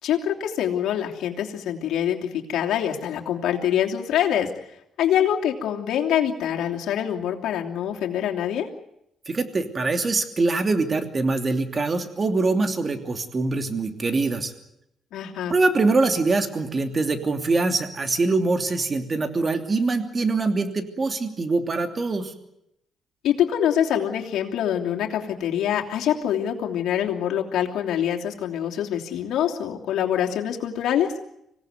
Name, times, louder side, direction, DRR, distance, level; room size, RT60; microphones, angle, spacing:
voice 1, 0.0-4.5 5.0-8.7 15.1-15.6 23.2-31.1, left 10 dB, 80° left, 1 dB, 3.0 m, -25 dB
voice 2, 9.3-14.5 15.5-22.3, right 3 dB, 35° right, 7 dB, 2.9 m, -23 dB
25.5 x 17.5 x 9.5 m, 0.81 s
cardioid pair, 90°, 0 cm